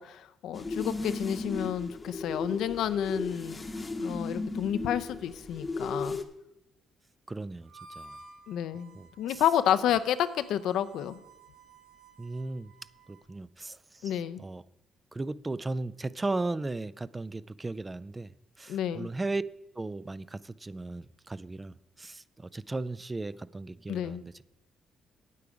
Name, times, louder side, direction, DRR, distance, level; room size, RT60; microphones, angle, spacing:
voice 1, 0.0-3.6 4.0-6.2 8.5-11.2 14.0-14.4 18.7-19.1 23.9-24.2, left 10 dB, 80° left, 0.5 m, -30 dB
sound 1, 0.5-6.2, left 3 dB, 20° left, 0.8 m, -35 dB
voice 2, 7.3-7.7 8.0-8.2 8.9-9.4 12.2-12.7 13.1-14.6 15.1-18.3 18.6-19.4 19.8-24.4, right 2 dB, 20° right, 0.3 m, -36 dB
Harmonica, 7.6-13.3, right 3 dB, 80° right, 2.0 m, -54 dB
8.5 x 8.4 x 4.9 m
cardioid pair, 90°, 0 cm